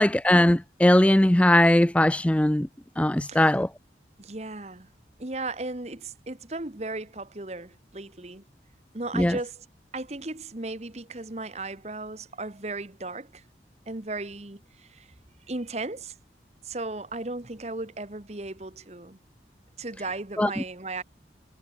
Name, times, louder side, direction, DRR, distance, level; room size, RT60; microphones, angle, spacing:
voice 1, 0.0-2.7 3.0-3.7 9.1-9.4 20.4-20.5, left 1 dB, 5° left, 0.4 m, -20 dB
voice 2, 4.2-4.9 5.2-8.4 8.9-9.6 9.9-13.4 13.9-15.1 15.5-16.1 16.6-19.2 19.8-21.0, right 2 dB, 35° right, 1.3 m, -36 dB
head